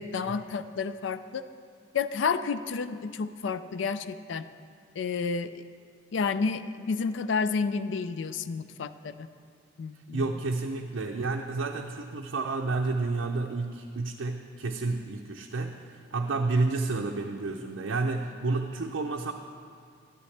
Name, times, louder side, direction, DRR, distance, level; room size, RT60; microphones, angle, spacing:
voice 1, 0.0-1.4 1.9-4.4 5.0-5.6 6.1-9.3 9.8-10.3, left 5 dB, 65° left, 13 dB, 0.4 m, -30 dB
voice 2, 10.1-19.3, right 3 dB, 70° right, 1 dB, 0.5 m, -30 dB
12.5 x 11.0 x 3.3 m, 2.3 s
head